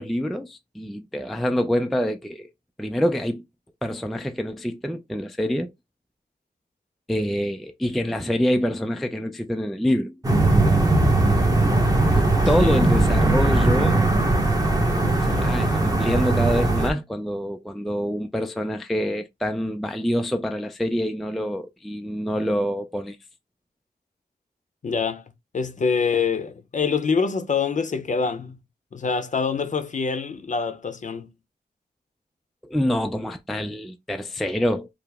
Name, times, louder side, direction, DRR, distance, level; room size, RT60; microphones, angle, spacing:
voice 1, 0.0-2.5 2.8-3.4 3.8-5.7 7.1-10.2 12.1-14.0 15.2-23.2 32.6-34.9, equal, ahead, 0.3 m, -26 dB
sound 1, 10.2-16.9, right 2 dB, 20° right, 0.9 m, -19 dB
voice 2, 24.8-25.2 25.5-28.6 28.9-31.3, left 5 dB, 45° left, 0.6 m, -25 dB
4.7 x 2.0 x 3.4 m
wide cardioid pair, 125°, 17 cm